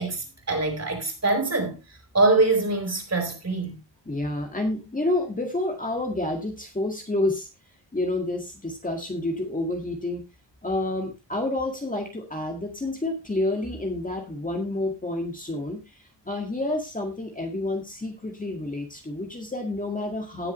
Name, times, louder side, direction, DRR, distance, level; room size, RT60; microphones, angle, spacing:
voice 1, 0.0-1.8 2.1-3.8, right 3 dB, 35° right, 4.2 m, -24 dB
voice 2, 4.1-7.5 7.9-10.2 10.6-20.5, left 2 dB, 20° left, 1.9 m, -29 dB
18.0 x 7.2 x 3.1 m
wide cardioid pair, 150°, 45 cm